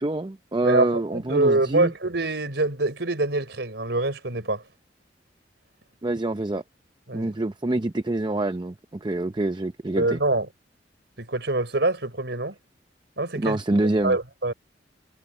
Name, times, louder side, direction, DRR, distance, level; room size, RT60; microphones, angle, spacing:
voice 1, 0.0-1.9 6.0-6.6 7.1-10.2 13.3-14.2, right 2 dB, 25° right, 0.6 m, -26 dB
voice 2, 0.6-4.6 7.1-7.3 10.0-10.5 11.2-12.5 13.2-13.6 14.0-14.5, right 2 dB, 65° right, 5.4 m, -25 dB
head